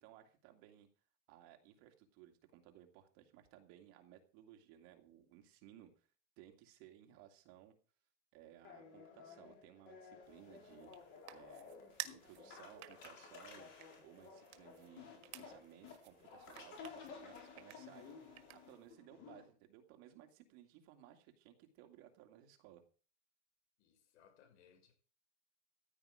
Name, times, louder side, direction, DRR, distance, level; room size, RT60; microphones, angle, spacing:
voice 1, 0.0-0.9 1.3-6.1 6.4-7.7 8.3-10.9 11.3-11.7 12.1-13.7 14.0-22.8, right 12 dB, 40° right, 2.3 m, -60 dB
sound 1, 8.6-19.4, left 5 dB, 35° left, 4.2 m, -55 dB
sound 2, 10.2-18.9, right 15 dB, 70° right, 1.7 m, -54 dB
voice 2, 23.8-24.9, left 8 dB, 85° left, 5.9 m, -66 dB
15.0 x 10.0 x 5.0 m
supercardioid pair, 175°, 34 cm